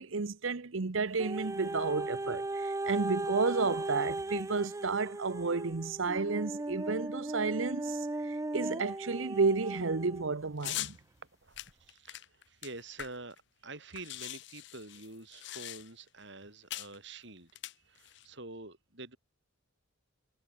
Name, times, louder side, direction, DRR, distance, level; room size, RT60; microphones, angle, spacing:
voice 1, 0.0-11.0, right 4 dB, 80° right, 0.9 m, -32 dB
sound 1, 1.2-10.3 10.9-11.0, right 2 dB, 15° right, 0.4 m, -37 dB
sound 2, 10.6-11.0 11.6-13.4 13.6-13.7 13.9-16.1 16.7-17.0 17.5-18.3, left 14 dB, 60° left, 0.7 m, -41 dB
voice 2, 11.4-17.5 17.8-19.2, right 2 dB, 60° right, 6.4 m, -47 dB
head